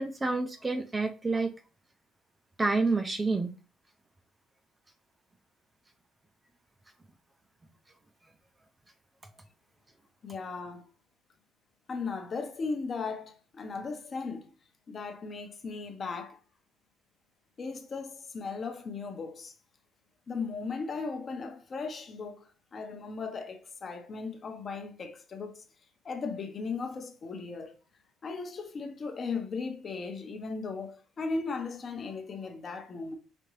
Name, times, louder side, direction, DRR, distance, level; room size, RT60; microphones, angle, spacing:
voice 1, 0.0-1.5 2.6-3.5, right 3 dB, 15° right, 0.4 m, -28 dB
voice 2, 10.2-10.9 11.9-14.5 14.9-16.4 17.6-19.5 20.3-25.6 26.0-27.8 28.2-33.1, left 4 dB, 30° left, 0.7 m, -37 dB
5.1 x 2.8 x 3.0 m
cardioid pair, 145°, 0 cm